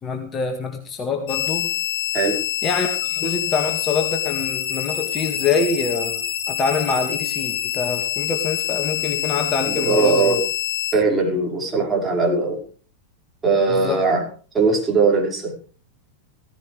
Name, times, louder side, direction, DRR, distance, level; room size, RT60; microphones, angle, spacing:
voice 1, 0.0-1.7 2.6-10.4 13.7-14.0, left 5 dB, 25° left, 4 dB, 2.1 m, -25 dB
sound 1, 1.3-10.9, left 11 dB, 40° left, 7.4 m, -26 dB
voice 2, 9.7-10.4 10.9-12.6 13.4-14.2 14.5-15.5, right 4 dB, 15° right, -1 dB, 5.5 m, -20 dB
16.5 x 15.5 x 3.4 m, 0.41 s
figure-of-eight pair, 90°, 0 cm